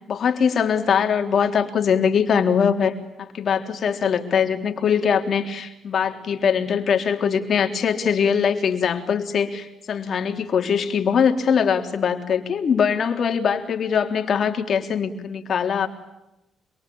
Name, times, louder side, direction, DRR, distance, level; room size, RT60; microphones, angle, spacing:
voice 1, 0.1-2.9 3.2-15.9, left 7 dB, 55° left, 5 dB, 3.6 m, -22 dB
27.0 x 23.5 x 8.8 m, 0.92 s
cardioid pair, 90°, 0 cm